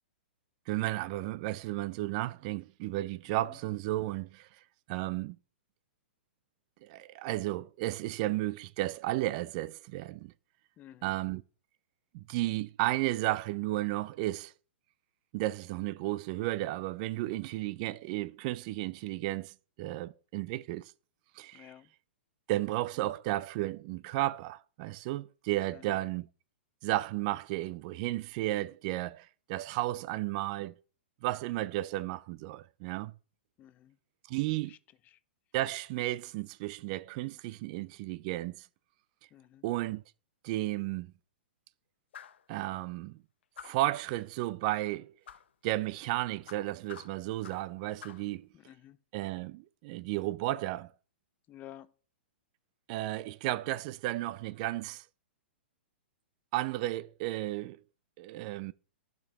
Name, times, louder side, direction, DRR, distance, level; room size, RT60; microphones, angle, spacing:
voice 1, 0.7-5.4 6.8-10.3 11.0-11.4 12.1-14.5 15.3-20.9 21.3-21.7 22.5-26.3 26.8-30.8 31.2-33.1 34.3-34.7 35.5-38.7 39.6-40.0 40.4-41.1 42.5-43.2 43.6-45.1 45.6-48.5 49.1-50.9 52.9-55.1 56.5-57.8 58.2-58.7, right 17 dB, 40° right, 0.3 m, -33 dB
voice 2, 10.8-11.2 21.5-21.9 25.7-26.0 33.6-34.0 34.7-34.8 35.0-35.2 39.3-39.6 48.5-49.0 51.5-51.9, left 12 dB, 25° left, 0.5 m, -52 dB
sound 1, 42.1-42.5 43.6-43.9 45.3-45.5 46.5-47.7 48.0-48.3, left 8 dB, 75° left, 0.6 m, -49 dB
12.0 x 5.2 x 3.4 m
hypercardioid pair, 130°, 6 cm